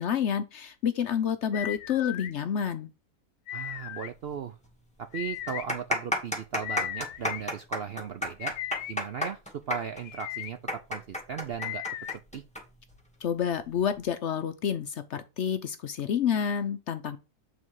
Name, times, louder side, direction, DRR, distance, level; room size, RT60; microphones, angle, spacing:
voice 1, 0.0-2.9 13.2-17.2, left 8 dB, 60° left, 0.8 m, -29 dB
sound 1, 1.5-2.3 3.5-4.1 5.1-5.6 6.6-7.4 8.4-9.0 10.0-10.5 11.6-12.2, left 12 dB, 85° left, 1.1 m, -36 dB
voice 2, 3.5-4.6 5.0-8.5 8.9-11.8 12.1-12.4, right 7 dB, 65° right, 0.6 m, -37 dB
sound 2, 4.3-4.4 4.6-4.7 5.4-12.6 12.9-13.0 13.8-14.0, left 1 dB, 5° left, 1.4 m, -31 dB
7.5 x 4.0 x 4.6 m
omnidirectional pair, 1.6 m